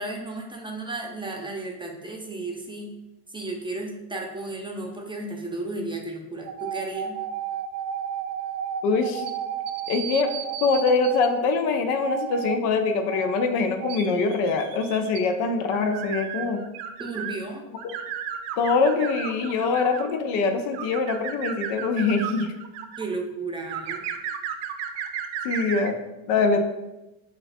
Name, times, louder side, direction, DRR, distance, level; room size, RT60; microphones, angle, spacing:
voice 1, 0.0-2.9 3.3-7.2 17.0-17.6 23.0-24.0, right 2 dB, 10° right, 0 dB, 0.6 m, -33 dB
sound 1, 6.4-11.3 12.0-12.6 13.1-13.4 13.8-17.4 17.8-20.2 20.7-23.0 23.7-25.9, right 9 dB, 70° right, 0.6 m, -33 dB
voice 2, 8.8-9.3 9.9-10.3 10.6-16.6 17.8-17.9 18.6-22.5 25.4-26.0 26.3-26.6, left 4 dB, 75° left, 6 dB, 0.7 m, -23 dB
5.7 x 2.5 x 2.6 m, 1.0 s
supercardioid pair, 90°, 42 cm